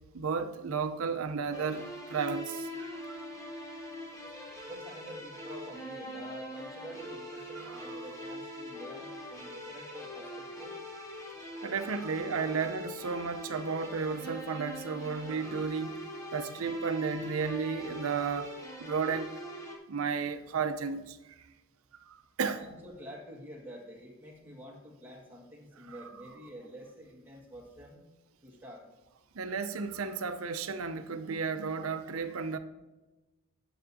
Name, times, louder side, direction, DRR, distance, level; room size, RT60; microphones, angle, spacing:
voice 1, 0.1-3.3 7.7-8.0 11.6-19.4 19.9-21.4 22.1-22.6 25.9-26.0 29.3-32.6, right 5 dB, 85° right, 0.6 m, -33 dB
sound 1, 1.5-19.8, left 1 dB, 15° left, 1.1 m, -42 dB
voice 2, 4.6-10.7 22.6-28.0 28.4-28.8, equal, 10° right, 1.6 m, -48 dB
10.0 x 7.2 x 2.7 m
head